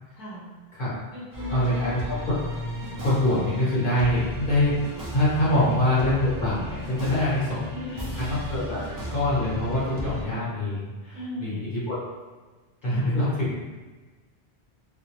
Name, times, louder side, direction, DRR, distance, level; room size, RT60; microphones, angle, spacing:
voice 1, 0.2-0.5 1.1-2.0 5.4-6.2 7.7-8.4 10.2-10.4 11.1-11.6 12.8-13.2, left 1 dB, ahead, -11 dB, 1.0 m, -38 dB
sound 1, 1.3-10.2, equal, 30° right, 0.3 m, -35 dB
voice 2, 1.5-2.2 2.6-4.8 5.1-7.6 8.1-8.8 9.1-12.0 12.8-13.7, left 1 dB, 55° left, -9 dB, 1.1 m, -25 dB
2.5 x 2.2 x 2.9 m, 1.3 s
omnidirectional pair, 1.1 m